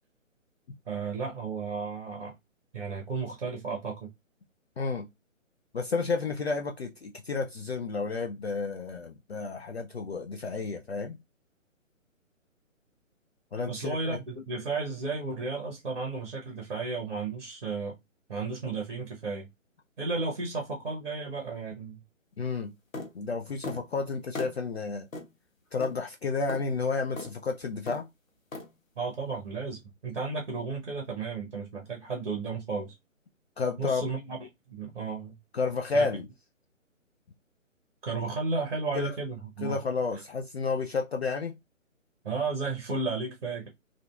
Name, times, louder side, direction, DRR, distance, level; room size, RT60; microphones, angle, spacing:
voice 1, 0.9-2.3 2.7-4.1 13.7-17.9 18.3-19.5 20.0-22.0 29.0-32.9 33.8-34.4 34.7-35.4 35.9-36.1 38.0-39.8 42.2-43.7, right 4 dB, 45° right, 0.8 m, -33 dB
voice 2, 4.8-5.1 5.7-11.2 13.5-14.2 22.4-22.7 23.1-25.1 25.7-28.1 33.6-34.0 35.5-36.3 38.9-39.1 39.6-41.6, left 4 dB, 50° left, 0.5 m, -31 dB
sound 1, 22.9-23.1 23.6-23.8 24.4-24.6 25.1-25.3 25.8-26.0 26.5-26.6 27.2-27.3 27.9-28.1 28.5-28.7, left 2 dB, 80° left, 0.8 m, -37 dB
2.5 x 2.5 x 2.2 m
figure-of-eight pair, 140°, 40 cm